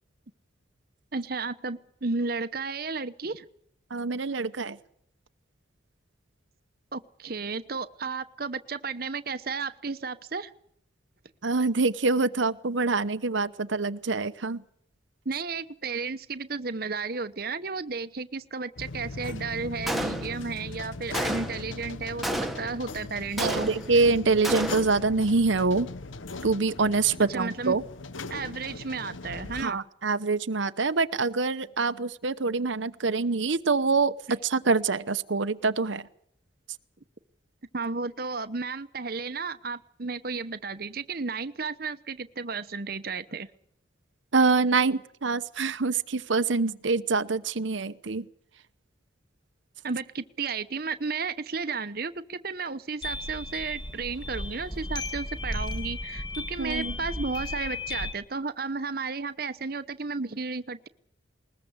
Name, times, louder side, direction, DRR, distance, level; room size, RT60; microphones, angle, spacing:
voice 1, 1.1-3.4 6.9-10.5 15.2-23.7 27.3-27.8 28.3-29.8 37.7-43.5 49.8-60.9, right 4 dB, 50° right, 11 dB, 1.0 m, -33 dB
voice 2, 3.9-4.8 11.4-14.6 23.4-25.9 26.4-27.8 29.6-34.1 34.4-36.1 44.3-48.2 56.6-57.0, right 4 dB, 75° right, 11 dB, 0.9 m, -25 dB
sound 1, 18.8-29.6, left 3 dB, 85° left, 1.1 m, -39 dB
Gunshot gunfire, 19.9-20.6 21.1-21.7 22.2-22.8 23.4-24.0 24.4-25.0, right 1 dB, ahead, 1.5 m, -31 dB
sound 2, 53.0-58.1, left 2 dB, 20° left, 2.2 m, -35 dB
20.5 x 20.5 x 8.1 m, 0.67 s
head